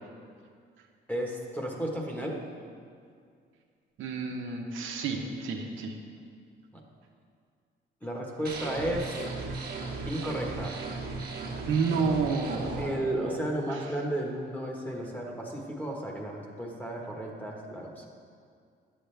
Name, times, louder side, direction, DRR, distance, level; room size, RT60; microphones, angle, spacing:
voice 1, 1.1-2.4 6.7-6.8 8.0-9.1 10.1-10.7 12.8-18.1, right 1 dB, 10° left, 0 dB, 1.4 m, -33 dB
voice 2, 4.0-5.9 11.5-13.9, right 4 dB, 80° right, 1 dB, 1.0 m, -31 dB
sound 1, 8.4-12.8, right 3 dB, 50° right, 1.3 m, -36 dB
10.0 x 7.4 x 3.4 m, 2.2 s
cardioid pair, 90°, 20 cm